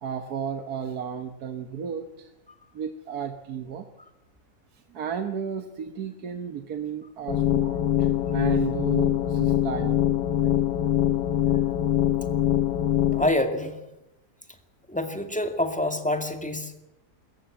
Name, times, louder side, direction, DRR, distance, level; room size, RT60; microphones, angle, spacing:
voice 1, 0.0-2.3 2.7-3.9 4.7-10.5, right 7 dB, 65° right, 7 dB, 1.7 m, -34 dB
sound 1, 7.3-13.3, left 11 dB, 80° left, 1.6 m, -23 dB
voice 2, 13.2-13.8 14.9-16.8, left 1 dB, 5° left, 6 dB, 2.1 m, -26 dB
24.5 x 14.5 x 8.8 m, 0.92 s
omnidirectional pair, 1.8 m